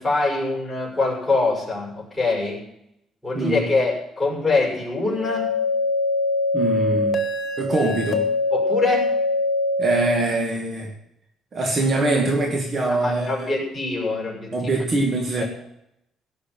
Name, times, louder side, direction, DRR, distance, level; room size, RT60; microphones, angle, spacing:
voice 1, 0.0-2.6 3.2-5.5 8.5-9.1 12.9-14.5 15.4-15.5, left 3 dB, 10° left, -4 dB, 6.3 m, -24 dB
voice 2, 3.3-3.7 6.5-7.3 7.6-8.3 9.8-10.9 11.5-13.5 14.5-15.4, right 2 dB, 40° right, 2 dB, 2.1 m, -23 dB
sound 1, 5.2-10.1, left 2 dB, 45° left, 1.6 m, -23 dB
17.0 x 6.5 x 9.3 m, 0.80 s
cardioid pair, 120°, 0 cm